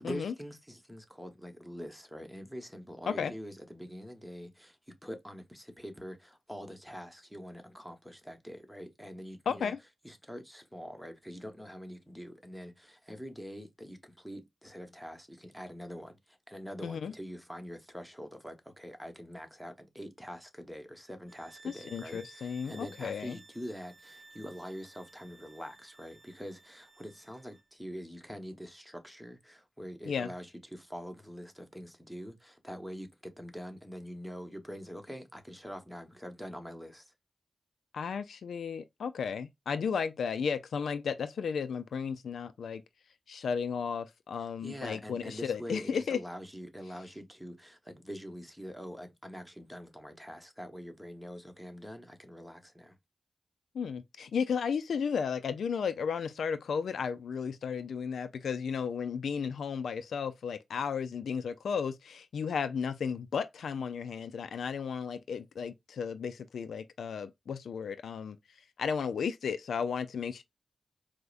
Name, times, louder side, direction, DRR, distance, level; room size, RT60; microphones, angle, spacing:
voice 1, 0.0-9.7 10.0-37.1 44.4-53.0, equal, ahead, 1.0 m, -44 dB
voice 2, 9.5-9.8 16.8-17.1 21.6-23.4 30.0-30.3 37.9-42.8 43.3-46.2 53.7-68.4 68.8-70.4, left 6 dB, 90° left, 0.3 m, -34 dB
sound 1, 21.3-27.7, right 3 dB, 55° right, 0.7 m, -56 dB
4.6 x 2.1 x 2.4 m
cardioid pair, 55°, 0 cm